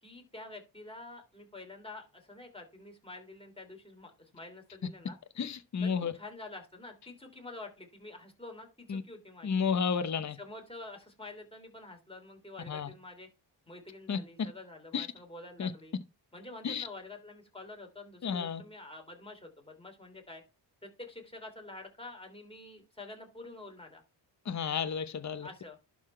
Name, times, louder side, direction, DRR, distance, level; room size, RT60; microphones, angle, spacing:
voice 1, 0.0-5.2 5.8-9.6 10.4-13.3 13.7-15.9 16.3-20.4 20.8-24.0 25.4-25.8, left 2 dB, 10° left, 3.2 m, -48 dB
voice 2, 5.4-6.1 8.9-9.0 9.4-10.4 12.7-12.9 14.1-14.5 14.9-15.1 15.6-15.7 16.6-16.9 18.2-18.6 24.4-25.5, left 6 dB, 40° left, 0.8 m, -32 dB
11.5 x 3.9 x 4.5 m
cardioid pair, 85°, 46 cm